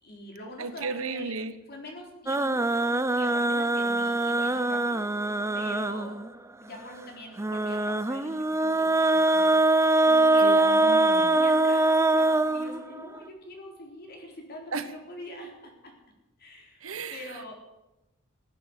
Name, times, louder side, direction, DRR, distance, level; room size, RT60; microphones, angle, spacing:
voice 1, 0.0-1.3 1.7-2.7 3.0-6.2 6.6-9.6 10.0-10.6 11.2-15.9 16.4-16.8 17.1-17.5, left 1 dB, 50° left, 1 dB, 4.0 m, -44 dB
voice 2, 0.6-1.5 10.4-11.3 14.7-14.8 16.8-17.2, right 4 dB, 80° right, 11 dB, 1.1 m, -33 dB
sound 1, 2.3-6.3 7.4-13.2, right 2 dB, 15° right, 0.5 m, -23 dB
16.5 x 9.0 x 8.1 m, 1.0 s
head